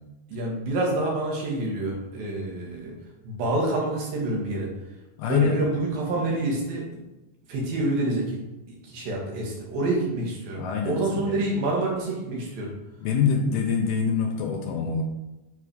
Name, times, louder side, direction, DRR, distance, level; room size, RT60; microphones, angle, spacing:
voice 1, 0.3-2.9 3.2-4.7 5.3-6.9 7.5-8.4 8.7-12.7, right 2 dB, 60° right, -2 dB, 3.2 m, -27 dB
voice 2, 5.2-5.6 10.5-11.5 13.0-15.0, left 6 dB, 80° left, 2 dB, 2.3 m, -25 dB
7.8 x 4.8 x 5.0 m, 1.0 s
omnidirectional pair, 5.1 m